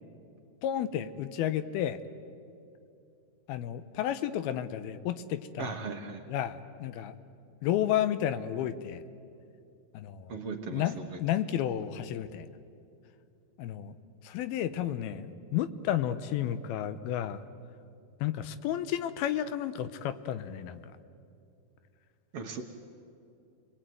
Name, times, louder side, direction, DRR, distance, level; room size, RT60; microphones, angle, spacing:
voice 1, 0.6-2.0 3.5-5.8 6.3-7.2 7.6-9.0 9.9-10.3 10.7-12.5 13.6-13.9 14.2-17.4 18.2-20.8, left 11 dB, 85° left, 12 dB, 2.8 m, -32 dB
voice 2, 5.6-6.2 10.3-11.2 22.3-22.6, right 4 dB, 55° right, 3 dB, 1.7 m, -38 dB
29.5 x 21.5 x 9.3 m, 2.6 s
omnidirectional pair, 4.3 m